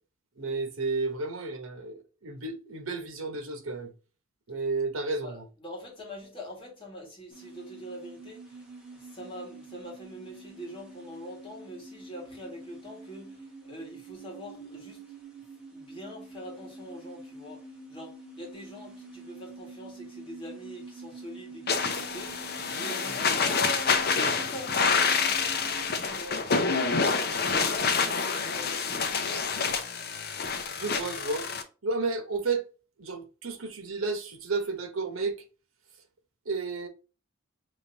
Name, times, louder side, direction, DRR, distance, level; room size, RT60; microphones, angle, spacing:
voice 1, 0.4-3.9 4.5-5.4 30.7-31.5 31.8-32.6 33.0-35.4 36.5-36.9, right 3 dB, 80° right, 1.1 m, -32 dB
voice 2, 5.2-8.6 9.0-15.0 15.7-26.4 26.8-29.1, equal, 25° left, 1.9 m, -44 dB
sound 1, 7.3-26.0, right 2 dB, 5° right, 1.5 m, -47 dB
sound 2, 21.7-31.6, left 5 dB, 50° left, 0.7 m, -27 dB
5.2 x 3.3 x 2.7 m
head